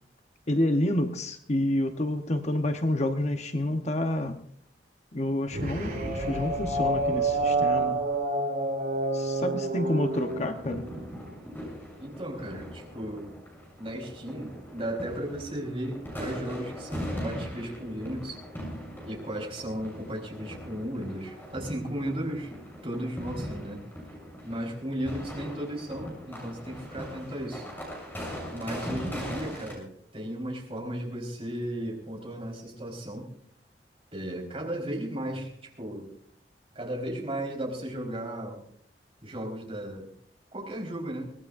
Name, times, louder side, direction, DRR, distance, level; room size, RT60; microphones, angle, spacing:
voice 1, 0.5-4.4 5.1-8.0 9.1-10.9, left 1 dB, 40° left, 1.0 m, -28 dB
sound 1, 5.5-11.0, right 2 dB, 55° right, 5.9 m, -28 dB
sound 2, 10.1-29.7, equal, 10° left, 6.8 m, -40 dB
voice 2, 12.0-13.3 13.8-18.4 19.0-22.5 22.8-23.8 24.4-27.7 28.5-33.3 34.1-36.1 36.7-38.6 39.2-40.1 40.5-41.3, right 1 dB, 35° right, 4.4 m, -35 dB
23.5 x 18.5 x 2.6 m
head